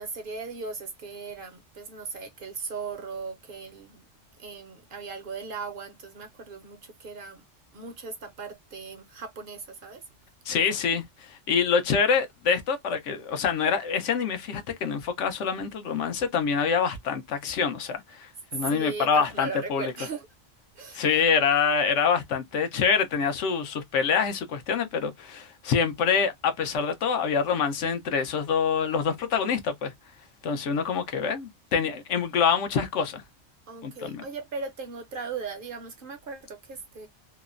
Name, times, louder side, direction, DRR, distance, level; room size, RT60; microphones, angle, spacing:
voice 1, 0.0-4.1 4.4-7.4 7.7-10.0 18.6-20.3 20.8-21.0 33.7-37.1, right 4 dB, 55° right, 0.7 m, -38 dB
voice 2, 10.5-19.9 20.9-29.9 30.4-33.2 33.8-34.2, left 6 dB, 80° left, 1.0 m, -26 dB
2.9 x 2.0 x 2.4 m
omnidirectional pair, 1.2 m